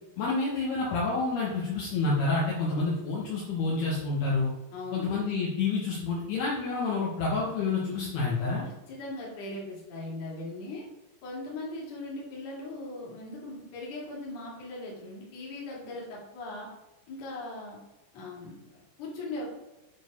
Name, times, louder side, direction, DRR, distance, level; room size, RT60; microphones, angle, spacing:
voice 1, 0.2-4.5 4.9-8.6, left 3 dB, 65° left, -5 dB, 3.2 m, -28 dB
voice 2, 4.7-5.1 8.6-10.8 11.2-16.7 17.1-17.8 18.1-19.4, left 2 dB, 40° left, -4 dB, 3.2 m, -39 dB
9.9 x 4.5 x 5.5 m, 1.0 s
omnidirectional pair, 5.5 m